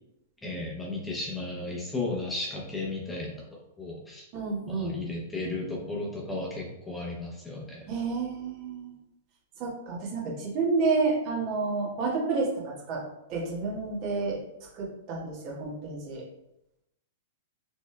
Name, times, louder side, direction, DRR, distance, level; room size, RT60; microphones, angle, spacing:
voice 1, 0.4-4.3 4.7-7.9, left 2 dB, 10° left, -3 dB, 0.8 m, -34 dB
voice 2, 4.3-5.0 7.9-8.9 9.6-13.0 13.3-14.4 14.7-16.2, right 4 dB, 45° right, -4 dB, 1.3 m, -30 dB
4.0 x 3.1 x 2.2 m, 0.86 s
hypercardioid pair, 110°, 0 cm